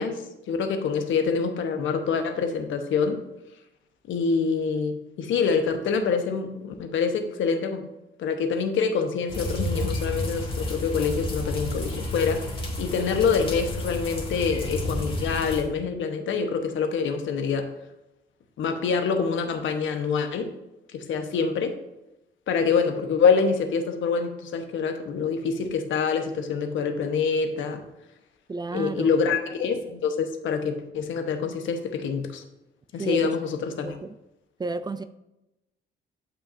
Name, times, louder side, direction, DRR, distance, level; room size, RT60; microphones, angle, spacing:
voice 1, 0.0-3.2 4.1-7.8 8.2-12.4 12.8-17.7 18.6-20.5 20.9-21.7 22.5-27.8 28.7-32.4 32.9-34.0, left 5 dB, 75° left, 6 dB, 1.0 m, -26 dB
sound 1, 9.3-15.6, left 1 dB, 25° left, 2.1 m, -31 dB
voice 2, 28.5-29.1 33.0-33.3 33.8-34.2 34.6-35.0, right 3 dB, 20° right, 13 dB, 0.4 m, -31 dB
12.5 x 5.6 x 2.6 m, 0.93 s
cardioid pair, 90°, 20 cm